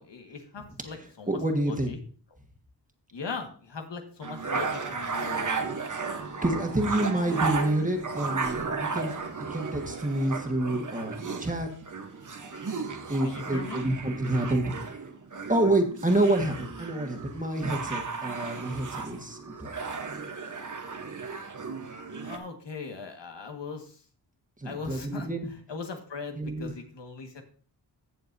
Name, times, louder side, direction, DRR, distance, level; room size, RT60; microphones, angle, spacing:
voice 1, 0.0-2.0 3.1-5.7 13.2-13.8 22.2-24.0 24.6-25.3 25.7-27.4, left 4 dB, 80° left, 4 dB, 1.7 m, -39 dB
voice 2, 1.3-1.9 6.4-9.1 9.4-11.7 13.1-14.9 15.5-19.7 24.6-25.5 26.3-26.7, right 1 dB, 20° right, 3 dB, 1.5 m, -28 dB
sound 1, 4.2-22.4, right 4 dB, 45° right, 1.0 m, -34 dB
15.5 x 6.9 x 2.7 m, 0.43 s
wide cardioid pair, 110°, 42 cm